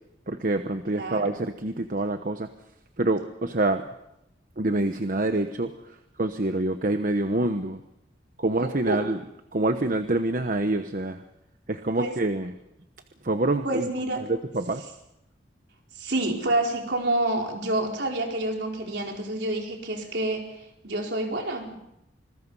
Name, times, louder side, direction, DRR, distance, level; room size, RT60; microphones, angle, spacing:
voice 1, 0.3-2.5 3.0-3.9 4.6-5.7 6.2-7.8 8.4-9.2 9.5-11.2 11.7-12.5 13.2-13.9 14.2-14.8, right 2 dB, 50° right, 7 dB, 1.0 m, -26 dB
voice 2, 0.9-1.3 8.5-9.0 12.0-12.1 13.6-14.3 16.0-21.7, right 1 dB, 65° right, 1 dB, 4.5 m, -28 dB
26.5 x 21.0 x 5.6 m, 0.85 s
head